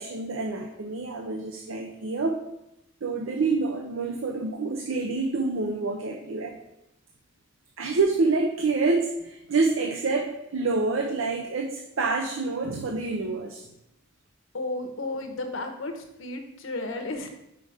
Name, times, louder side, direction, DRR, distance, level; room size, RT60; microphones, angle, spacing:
voice 1, 0.0-2.4 3.0-6.5 7.8-13.7, right 3 dB, 80° right, 3 dB, 0.6 m, -27 dB
voice 2, 14.5-17.3, left 2 dB, 80° left, 5 dB, 1.0 m, -33 dB
5.5 x 5.1 x 4.9 m, 0.85 s
head